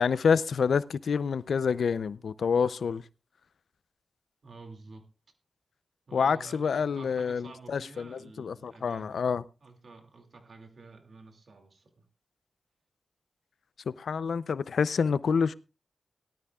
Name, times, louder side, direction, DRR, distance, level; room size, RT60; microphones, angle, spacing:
voice 1, 0.0-3.0 6.1-9.4 13.9-15.5, left 6 dB, 80° left, 0.5 m, -27 dB
voice 2, 4.4-5.1 6.1-9.2 9.6-12.1, right 3 dB, 65° right, 2.4 m, -50 dB
18.0 x 12.5 x 2.4 m
cardioid pair, 55°, 0 cm